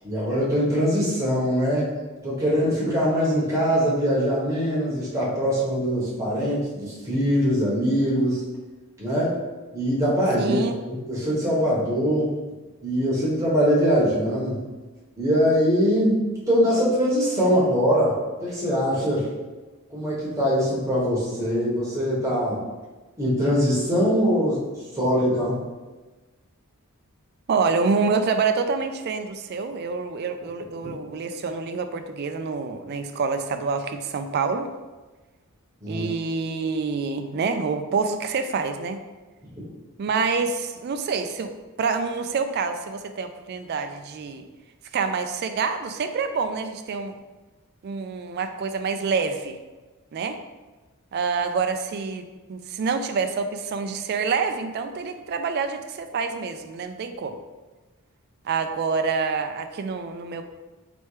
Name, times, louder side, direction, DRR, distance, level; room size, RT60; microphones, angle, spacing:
voice 1, 0.0-1.9 2.2-8.4 9.0-9.4 9.7-10.6 10.9-12.3 12.8-14.6 15.2-19.2 19.9-22.6 23.2-24.6 24.9-25.6 30.8-30.9 35.8-36.1 39.5-39.7, equal, 15° right, -7 dB, 1.2 m, -22 dB
voice 2, 10.4-10.8 27.5-34.7 35.9-39.0 40.0-41.5 41.8-44.5 44.9-47.1 47.8-49.6 50.1-50.4 51.1-52.2 52.5-57.3 58.4-60.4, right 5 dB, 45° right, 7 dB, 0.3 m, -27 dB
4.3 x 3.0 x 3.3 m, 1.2 s
head